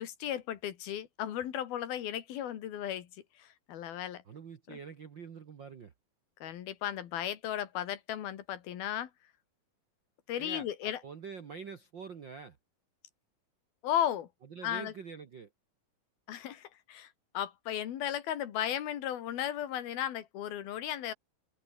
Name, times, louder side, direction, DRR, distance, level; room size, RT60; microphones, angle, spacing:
voice 1, 0.0-3.1 3.4-4.2 4.7-4.8 6.4-9.1 10.3-11.0 13.8-14.3 14.6-14.9 16.3-17.1 17.3-21.1, left 11 dB, 85° left, 3.8 m, -35 dB
voice 2, 4.2-5.9 10.4-12.6 14.5-15.5, right 5 dB, 60° right, 1.2 m, -45 dB
omnidirectional pair, 4.2 m